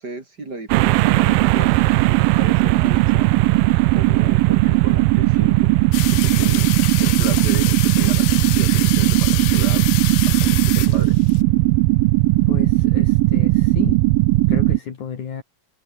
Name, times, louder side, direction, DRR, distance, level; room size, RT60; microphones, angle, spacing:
voice 1, 0.0-1.7 2.3-3.3 3.9-5.8 6.1-6.7 7.0-9.9 10.3-11.2, right 3 dB, 30° right, 3.8 m, -33 dB
sound 1, 0.7-14.8, right 19 dB, 85° right, 2.5 m, -17 dB
sound 2, 5.9-11.4, left 18 dB, 75° left, 2.1 m, -28 dB
voice 2, 12.5-14.0 14.5-15.4, left 7 dB, 60° left, 4.2 m, -31 dB
omnidirectional pair, 4.0 m